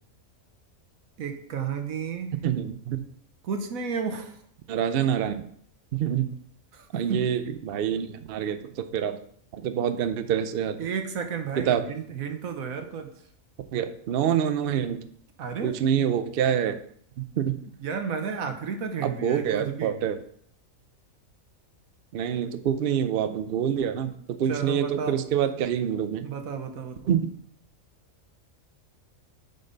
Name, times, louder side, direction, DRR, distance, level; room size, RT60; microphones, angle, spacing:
voice 1, 1.2-2.3 3.4-4.3 7.1-7.2 10.8-13.1 15.4-15.7 17.8-20.0 24.5-25.1 26.2-27.0, right 6 dB, 85° right, 6 dB, 1.4 m, -32 dB
voice 2, 2.4-3.0 4.7-5.5 5.9-6.4 6.9-9.2 9.5-10.8 11.6-11.8 13.7-15.0 15.6-16.8 17.2-17.6 19.0-20.2 22.1-26.3 27.1-27.3, right 9 dB, 60° right, 9 dB, 0.6 m, -26 dB
7.7 x 5.5 x 3.9 m, 0.64 s
omnidirectional pair, 1.4 m